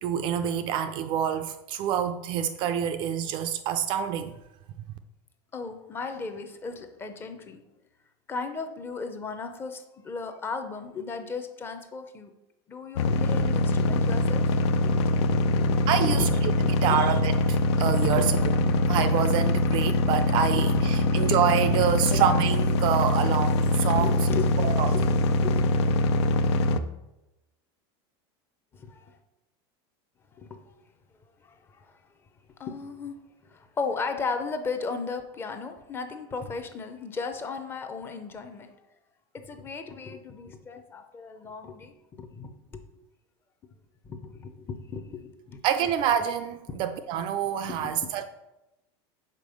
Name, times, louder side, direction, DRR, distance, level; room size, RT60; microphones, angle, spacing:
voice 1, 0.0-4.3 15.9-16.3 16.8-24.1 24.6-25.0 45.6-48.2, right 9 dB, 35° right, 0.3 m, -27 dB
voice 2, 5.5-7.6 8.3-12.3 12.7-14.5 14.8-16.3 16.6-17.0 18.1-18.3 20.5-20.6 21.0-21.2 24.0-25.7 28.7-29.2 30.3-30.7 31.4-32.0 32.6-33.2 33.4-38.8 39.3-42.8 44.0-45.6 46.7-46.8 47.7-48.0, left 4 dB, 15° left, 0.6 m, -36 dB
sound 1, 13.0-26.8, left 2 dB, 90° left, 0.6 m, -23 dB
5.2 x 4.9 x 6.3 m
supercardioid pair, 160°, 14 cm